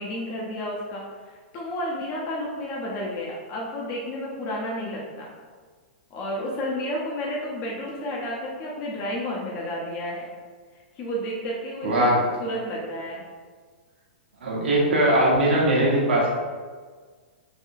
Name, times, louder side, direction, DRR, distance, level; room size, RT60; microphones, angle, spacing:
voice 1, 0.0-5.3 6.1-10.3 11.0-12.1 12.4-13.2, equal, 40° left, -4 dB, 0.6 m, -31 dB
voice 2, 11.8-12.2 14.4-16.3, right 1 dB, 80° right, -3 dB, 0.9 m, -20 dB
3.4 x 2.2 x 2.6 m, 1.5 s
hypercardioid pair, 120°, 6 cm